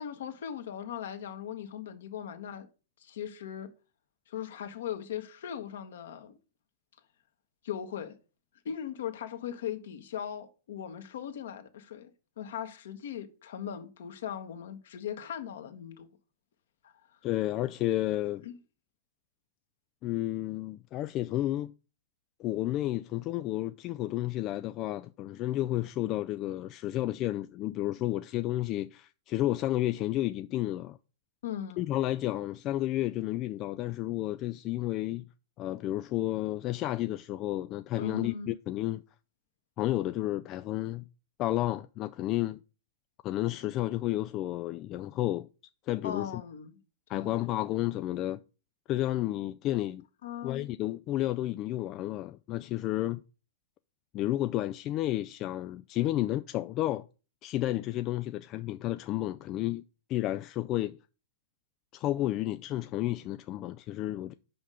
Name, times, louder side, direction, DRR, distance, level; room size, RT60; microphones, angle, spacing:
voice 1, 0.0-2.7 3.0-3.7 4.3-6.4 7.6-8.1 8.6-12.1 12.4-16.1 16.8-16.9 18.4-18.6 31.4-31.8 38.0-38.5 46.0-46.8 47.1-47.4 50.2-50.7, left 9 dB, 65° left, 1.2 m, -39 dB
voice 2, 17.2-18.4 20.0-21.7 22.4-31.0 31.8-35.2 35.6-39.0 39.8-41.0 41.4-42.6 43.2-45.5 45.9-46.4 47.1-48.4 48.9-50.0 50.4-53.2 54.1-57.1 57.4-59.8 60.1-61.0 61.9-64.3, left 15 dB, 35° left, 0.3 m, -31 dB
5.8 x 5.4 x 4.9 m
hypercardioid pair, 110°, 0 cm